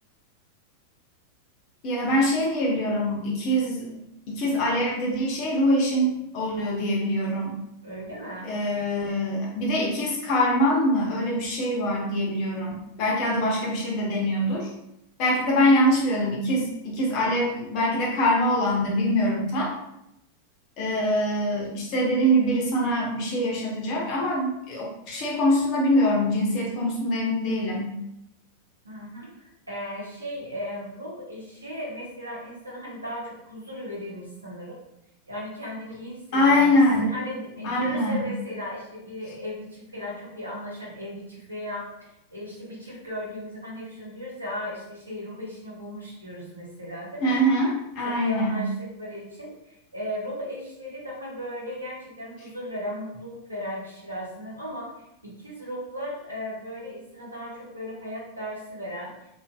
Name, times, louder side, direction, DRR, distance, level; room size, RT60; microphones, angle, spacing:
voice 1, 1.8-3.9 4.3-7.5 8.4-14.7 15.2-19.7 20.8-27.9 36.3-37.1 37.6-38.2 47.2-48.6, equal, 40° left, -2 dB, 0.8 m, -24 dB
voice 2, 7.8-8.5 28.8-34.8 35.3-41.9 42.3-47.4 48.0-49.5 49.9-59.1, equal, 85° right, -5 dB, 0.9 m, -36 dB
2.6 x 2.4 x 2.3 m, 0.83 s
figure-of-eight pair, 90°, 0 cm